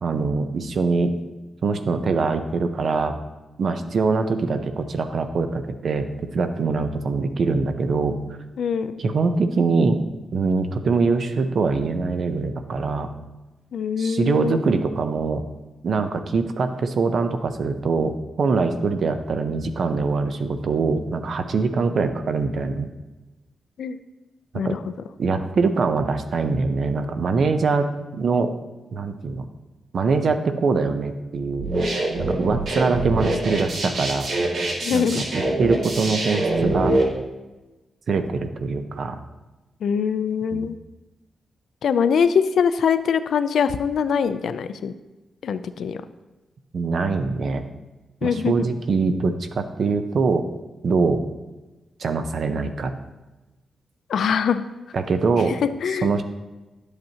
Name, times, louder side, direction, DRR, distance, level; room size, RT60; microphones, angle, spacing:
voice 1, 0.0-1.1 1.6-3.2 3.6-8.2 9.0-10.0 10.3-13.1 14.0-15.4 15.8-22.9 24.5-24.8 25.2-28.5 28.9-29.5 29.9-31.7 32.2-34.3 34.9-35.1 35.3-37.0 38.1-39.2 40.5-40.7 46.7-47.6 48.2-50.5 50.8-51.2 52.0-52.9 54.9-55.6 56.0-56.2, right 4 dB, 50° right, 8 dB, 0.6 m, -23 dB
voice 2, 8.6-8.9 13.7-14.6 23.8-24.0 24.5-24.8 34.8-35.2 39.8-40.7 41.8-44.9 45.4-46.0 48.2-48.5 54.1-54.7 55.5-56.2, left 7 dB, 70° left, 12 dB, 0.4 m, -23 dB
sound 1, 31.6-37.0, right 2 dB, 80° right, 2.0 m, -24 dB
10.5 x 7.9 x 2.8 m, 1.1 s
wide cardioid pair, 170°, 0 cm